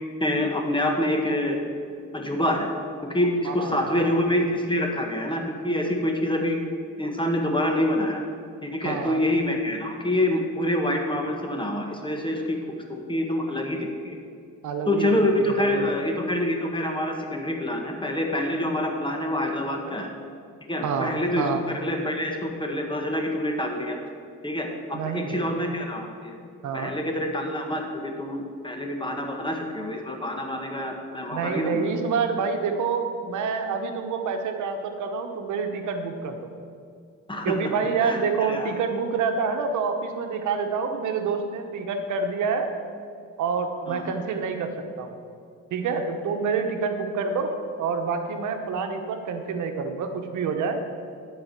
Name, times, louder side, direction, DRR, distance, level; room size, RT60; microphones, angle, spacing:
voice 1, 0.2-1.6 2.1-2.7 3.1-6.6 7.0-8.2 8.6-12.4 12.9-14.1 14.9-20.1 20.7-24.0 24.4-26.4 26.7-31.8 37.3-37.6 38.0-38.7 43.9-44.1, left 1 dB, 15° left, 2 dB, 1.6 m, -26 dB
voice 2, 3.4-4.1 8.8-9.2 14.6-15.1 15.4-15.9 20.8-21.6 24.9-25.5 26.6-26.9 31.3-36.4 37.4-42.7 43.4-45.1 45.7-50.8, right 5 dB, 80° right, 5 dB, 1.1 m, -27 dB
11.5 x 4.9 x 7.5 m, 2.3 s
cardioid pair, 90°, 30 cm